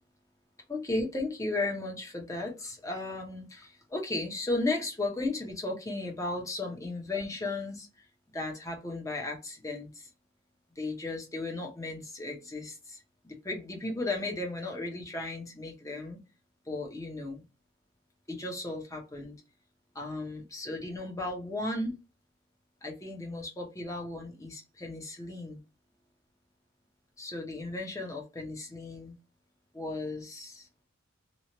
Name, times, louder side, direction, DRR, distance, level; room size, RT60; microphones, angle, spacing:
voice 1, 0.7-8.1 8.3-10.1 10.8-13.0 13.2-16.2 16.7-17.4 18.3-19.3 19.9-21.9 22.8-25.6 27.2-29.2 29.7-30.7, left 2 dB, 15° left, 0.7 m, -35 dB
3.0 x 2.3 x 2.8 m
head